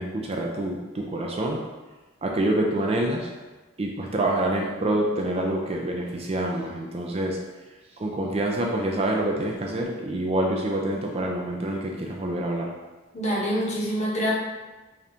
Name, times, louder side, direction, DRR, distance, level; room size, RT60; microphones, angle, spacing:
voice 1, 0.0-1.6 2.2-3.3 3.8-7.4 8.0-12.7, right 1 dB, 30° right, 0 dB, 0.4 m, -26 dB
voice 2, 13.1-14.3, equal, 35° left, -4 dB, 0.9 m, -25 dB
3.7 x 2.8 x 3.4 m, 1.2 s
head